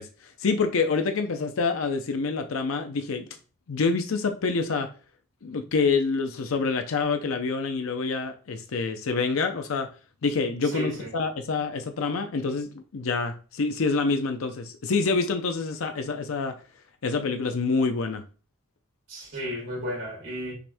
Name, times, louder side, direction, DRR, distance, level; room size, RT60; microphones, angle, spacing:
voice 1, 0.0-3.3 3.7-4.9 5.4-9.9 10.2-16.6 17.0-18.2, left 4 dB, 90° left, 0.5 m, -27 dB
voice 2, 10.7-11.1 19.1-20.5, equal, 70° right, 2.6 m, -33 dB
6.0 x 3.4 x 2.6 m
head